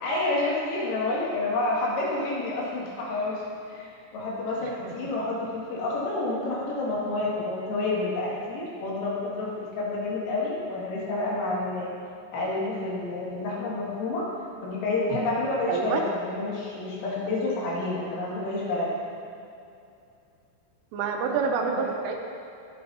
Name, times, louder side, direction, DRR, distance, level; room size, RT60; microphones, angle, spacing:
voice 1, 0.0-12.0 12.3-14.3 14.6-19.1 21.7-21.8, left 2 dB, 75° left, -6 dB, 4.9 m, -29 dB
voice 2, 15.7-16.0 20.9-22.2, right 5 dB, 80° right, 2 dB, 3.3 m, -27 dB
22.0 x 7.6 x 2.9 m, 2.6 s
omnidirectional pair, 5.9 m